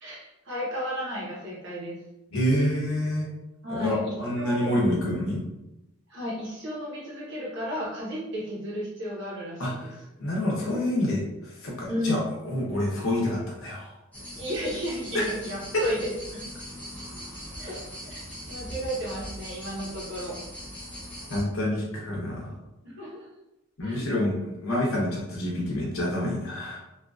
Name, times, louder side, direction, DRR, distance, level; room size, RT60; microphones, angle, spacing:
voice 1, 0.0-2.0 3.6-4.7 6.1-9.9 11.9-12.2 14.3-16.4 17.6-17.8 18.1-18.2 18.5-20.4 22.8-23.3 23.8-24.1, equal, 55° right, -5 dB, 0.9 m, -33 dB
voice 2, 2.3-3.3 3.7-5.4 9.6-13.9 15.1-15.3 15.7-15.8 21.3-22.6 23.8-26.8, left 1 dB, 70° left, -3 dB, 0.8 m, -27 dB
sound 1, 14.1-21.4, equal, 5° left, 0.6 m, -40 dB
2.7 x 2.5 x 2.3 m, 0.95 s
head